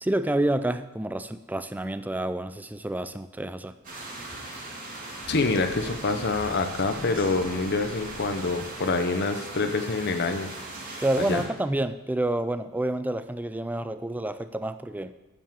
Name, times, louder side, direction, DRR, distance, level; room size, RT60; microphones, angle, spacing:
voice 1, 0.0-3.7 11.0-15.1, right 1 dB, 10° right, 12 dB, 0.4 m, -28 dB
sound 1, 3.8-11.4, right 2 dB, 40° right, 2.6 m, -39 dB
sound 2, 5.2-9.5, right 1 dB, 25° right, 2.3 m, -45 dB
voice 2, 5.3-10.5 11.2-11.4, left 3 dB, 50° left, 7 dB, 0.9 m, -26 dB
9.0 x 7.2 x 7.3 m, 1.1 s
head